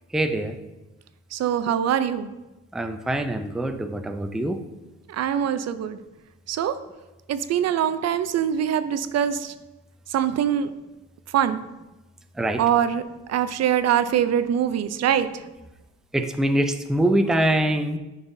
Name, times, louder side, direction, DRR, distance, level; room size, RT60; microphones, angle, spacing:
voice 1, 0.1-0.6 2.7-4.6 12.4-12.6 16.1-18.0, right 1 dB, ahead, 7 dB, 0.4 m, -24 dB
voice 2, 1.3-2.3 5.1-6.0 6.5-6.8 7.3-9.5 10.1-10.7 11.3-11.6 12.6-13.0 13.3-15.3, right 9 dB, 60° right, 12 dB, 0.5 m, -23 dB
9.7 x 5.4 x 2.7 m, 1.0 s
cardioid pair, 90°, 30 cm